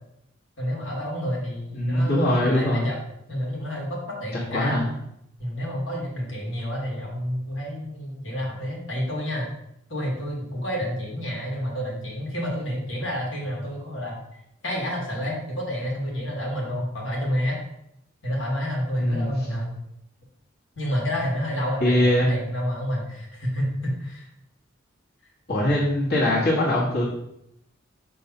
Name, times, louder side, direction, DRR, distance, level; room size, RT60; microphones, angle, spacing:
voice 1, 0.6-3.0 3.3-4.8 5.4-9.5 9.9-14.2 14.6-17.6 18.2-19.8 20.7-24.3, equal, 70° left, -2 dB, 1.8 m, -29 dB
voice 2, 1.8-2.9 4.3-4.9 19.0-19.3 21.8-22.3 25.5-27.0, left 1 dB, 55° left, -7 dB, 1.6 m, -22 dB
5.5 x 3.7 x 5.3 m, 0.78 s
head